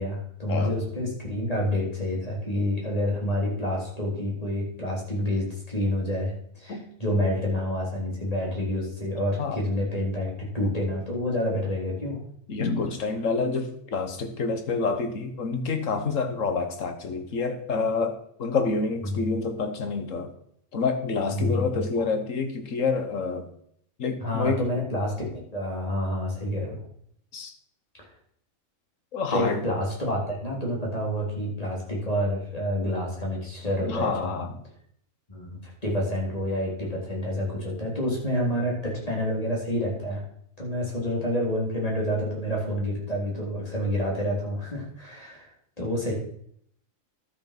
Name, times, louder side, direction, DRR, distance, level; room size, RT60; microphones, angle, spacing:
voice 1, 0.0-12.2 19.0-19.3 21.3-21.7 24.2-26.8 28.0-28.1 29.3-34.1 35.3-40.2 40.6-45.5 45.8-46.1, left 1 dB, 25° left, -3 dB, 3.5 m, -28 dB
voice 2, 12.5-20.3 20.7-23.5 24.0-24.6 27.3-27.5 29.1-29.6 33.8-34.6, left 4 dB, 65° left, 7 dB, 1.6 m, -28 dB
12.0 x 6.3 x 5.9 m, 0.67 s
omnidirectional pair, 1.4 m